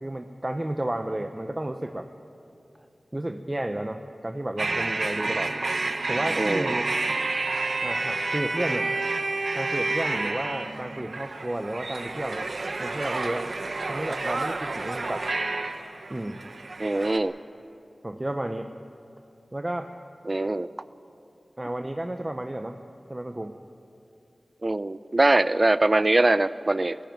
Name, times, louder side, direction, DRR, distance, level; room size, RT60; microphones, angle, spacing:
voice 1, 0.0-2.1 3.1-5.6 6.1-6.9 7.8-8.9 9.5-12.5 12.8-13.4 13.9-15.3 16.1-16.4 16.8-16.9 18.0-18.7 19.5-19.9 21.6-22.8 23.1-23.6, right 1 dB, 25° right, 6 dB, 0.8 m, -32 dB
sound 1, 4.6-17.2, right 3 dB, 80° right, 1.1 m, -29 dB
voice 2, 6.4-6.8 16.8-17.3 20.3-20.7 24.6-27.0, right 2 dB, 45° right, 15 dB, 0.5 m, -22 dB
18.0 x 15.0 x 9.6 m, 2.7 s
wide cardioid pair, 50°, 0 cm